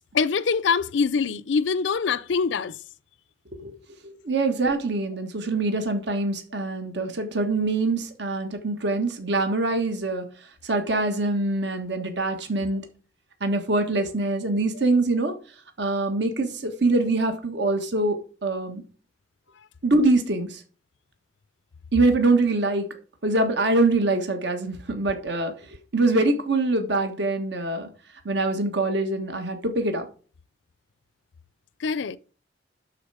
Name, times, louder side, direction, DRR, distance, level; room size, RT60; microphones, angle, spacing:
voice 1, 0.1-2.7 31.8-32.2, left 5 dB, 70° left, 0.5 m, -24 dB
voice 2, 4.0-10.2 10.6-12.8 13.4-15.3 15.8-18.8 19.8-20.6 21.9-22.9 23.2-25.5 25.9-27.9 28.2-30.0, right 2 dB, 65° right, 1.4 m, -24 dB
11.5 x 4.4 x 4.9 m
head